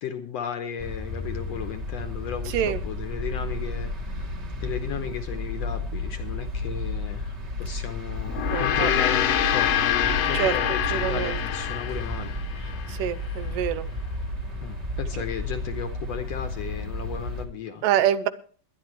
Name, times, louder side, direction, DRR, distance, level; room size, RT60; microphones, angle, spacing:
voice 1, 0.0-4.3 4.6-12.3 14.6-17.9, left 8 dB, 70° left, 7 dB, 1.7 m, -34 dB
sound 1, 0.8-17.5, left 1 dB, 40° right, 1.0 m, -33 dB
voice 2, 2.5-2.8 8.5-8.9 10.3-10.6 10.9-11.4 12.9-13.9 17.8-18.3, right 11 dB, 90° right, 13 dB, 2.4 m, -25 dB
sound 2, 5.6-14.4, equal, 60° right, 1.9 m, -41 dB
Gong, 8.3-12.9, left 10 dB, 90° left, 2.8 m, -26 dB
21.0 x 10.5 x 3.2 m, 0.43 s
omnidirectional pair, 3.8 m